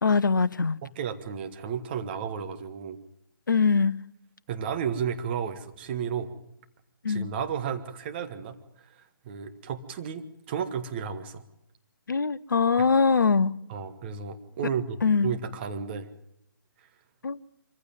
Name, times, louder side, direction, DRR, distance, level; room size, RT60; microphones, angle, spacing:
voice 1, 0.0-0.8 3.5-3.9 7.0-7.3 12.1-13.5 15.0-15.4 17.2-17.4, left 5 dB, 60° left, 0.8 m, -22 dB
voice 2, 0.8-3.0 4.5-6.3 7.1-8.6 8.8-11.4 12.8-12.9 13.7-15.0 15.2-16.1, right 7 dB, 30° right, 1.5 m, -33 dB
24.5 x 15.0 x 9.2 m
figure-of-eight pair, 140°, 12 cm